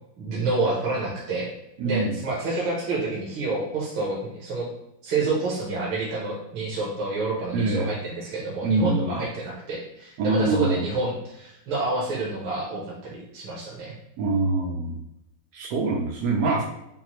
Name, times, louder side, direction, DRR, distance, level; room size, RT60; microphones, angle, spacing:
voice 1, 0.2-1.5 1.8-4.7 5.0-14.0, right 3 dB, 70° right, -5 dB, 1.6 m, -28 dB
voice 2, 1.8-2.2 7.5-7.9 8.6-9.2 10.2-10.8 14.2-15.0 15.5-16.6, right 3 dB, 90° right, -2 dB, 0.8 m, -24 dB
5.6 x 2.1 x 2.9 m, 0.85 s
omnidirectional pair, 2.3 m